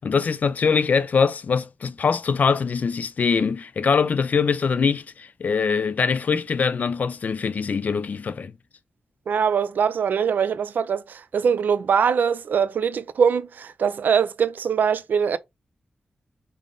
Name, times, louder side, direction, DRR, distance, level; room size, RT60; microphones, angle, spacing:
voice 1, 0.0-8.5, left 5 dB, 60° left, 0.3 m, -23 dB
voice 2, 9.3-15.4, right 7 dB, 90° right, 0.4 m, -22 dB
5.3 x 2.1 x 3.7 m
wide cardioid pair, 105°, 3 cm